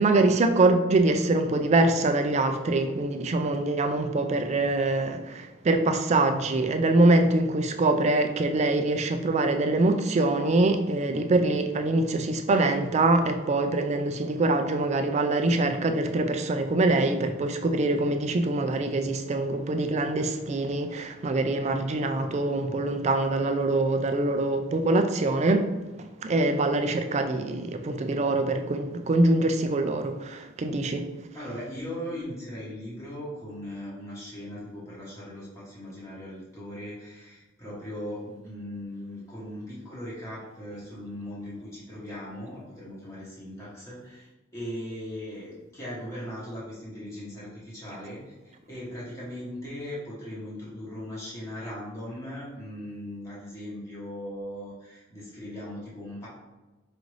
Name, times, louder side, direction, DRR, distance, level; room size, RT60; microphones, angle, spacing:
voice 1, 0.0-25.7 26.2-31.1, right 2 dB, 35° right, 6 dB, 0.3 m, -24 dB
voice 2, 31.3-56.3, equal, 15° left, -9 dB, 1.0 m, -39 dB
4.9 x 2.5 x 3.1 m, 1.2 s
head